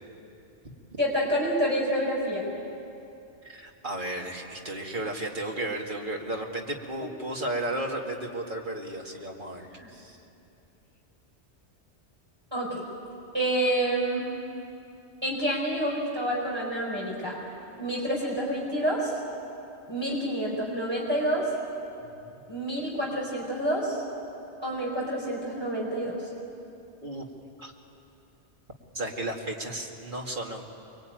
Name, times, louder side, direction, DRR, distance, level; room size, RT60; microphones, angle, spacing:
voice 1, 1.0-2.5 9.6-9.9 12.5-12.8 13.3-14.3 15.2-17.4 17.8-19.1 19.9-21.5 22.5-24.0 24.6-26.2, right 1 dB, 20° right, -4 dB, 4.4 m, -28 dB
voice 2, 3.4-10.2 22.0-22.4 27.0-27.3 27.6-27.7 28.9-30.6, right 1 dB, 45° right, 0 dB, 2.6 m, -34 dB
25.0 x 22.5 x 9.3 m, 2.7 s
omnidirectional pair, 1.2 m